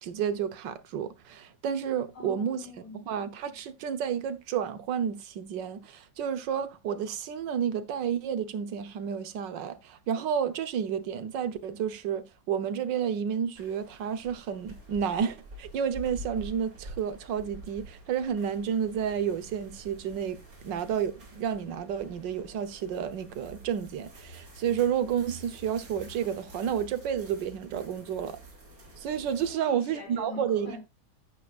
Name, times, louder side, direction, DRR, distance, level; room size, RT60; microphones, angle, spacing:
voice 1, 0.0-2.6 3.1-28.4 29.0-30.7, right 8 dB, 70° right, 1.6 m, -31 dB
voice 2, 2.1-3.0 29.5-30.8, left 3 dB, 55° left, 5.7 m, -43 dB
sound 1, 13.5-29.5, right 2 dB, 50° right, 3.4 m, -48 dB
11.5 x 8.7 x 2.4 m
omnidirectional pair, 2.0 m